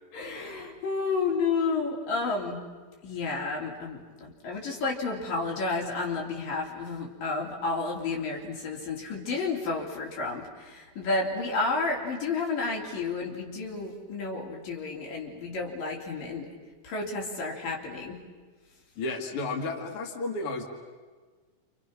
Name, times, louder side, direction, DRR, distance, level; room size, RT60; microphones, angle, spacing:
voice 1, 0.1-2.6 3.0-16.5 16.8-18.2, left 3 dB, 85° left, -2 dB, 5.2 m, -31 dB
voice 2, 19.0-20.6, left 3 dB, 45° left, 2 dB, 2.8 m, -32 dB
29.5 x 27.5 x 6.1 m, 1.4 s
omnidirectional pair, 3.8 m